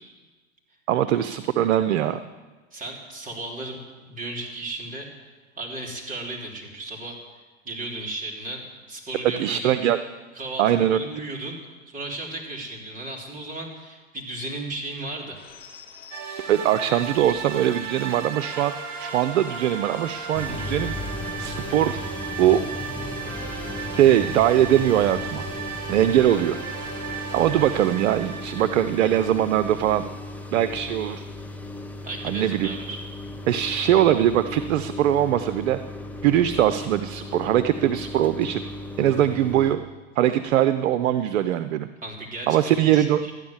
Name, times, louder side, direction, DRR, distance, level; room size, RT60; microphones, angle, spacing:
voice 1, 0.9-2.2 9.4-10.0 10.6-11.0 16.5-18.7 19.0-20.9 21.4-22.0 22.4-22.6 23.9-25.5 25.9-26.6 27.3-30.0 30.5-31.2 32.2-32.7 33.5-35.8 36.2-38.6 39.0-39.8 40.2-41.9 42.5-43.2, right 11 dB, 75° right, 12 dB, 0.7 m, -21 dB
voice 2, 2.7-8.6 8.9-9.8 10.3-11.6 11.9-15.4 32.0-33.0 42.0-43.3, right 2 dB, 20° right, 0 dB, 3.4 m, -35 dB
sound 1, 15.3-27.8, left 6 dB, 25° left, 2.0 m, -46 dB
sound 2, 16.1-30.3, right 7 dB, 40° right, 2.2 m, -36 dB
sound 3, 20.3-39.8, left 2 dB, 5° left, 0.9 m, -36 dB
13.5 x 9.6 x 7.3 m, 1.3 s
hypercardioid pair, 110°, 39 cm